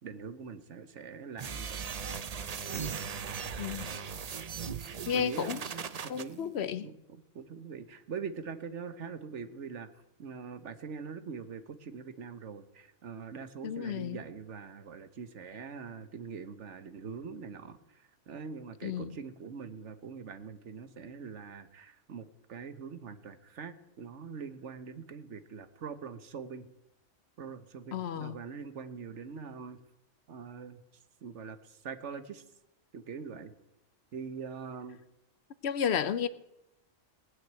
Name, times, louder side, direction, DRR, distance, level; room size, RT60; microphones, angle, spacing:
voice 1, 0.0-1.8 2.7-3.0 5.1-6.5 6.8-9.9 10.2-26.7 27.4-29.8 30.3-30.8 31.2-32.4 32.9-33.5 34.1-35.0, right 6 dB, 75° right, 1.3 m, -43 dB
sound 1, 1.4-6.2, right 6 dB, 45° right, 0.6 m, -38 dB
voice 2, 3.6-3.9 5.1-5.6 6.1-6.9 13.6-14.2 18.8-19.1 27.9-28.4 35.6-36.3, left 8 dB, 65° left, 0.9 m, -32 dB
19.0 x 6.4 x 8.7 m
omnidirectional pair, 1.2 m